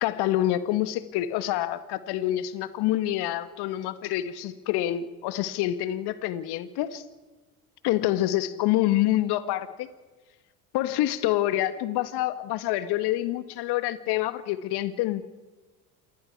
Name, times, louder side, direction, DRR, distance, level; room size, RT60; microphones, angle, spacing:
voice 1, 0.0-7.0 7.8-9.9 10.7-15.2, left 14 dB, 60° left, 12 dB, 1.7 m, -27 dB
28.0 x 20.5 x 4.7 m, 1.2 s
hypercardioid pair, 70°, 45 cm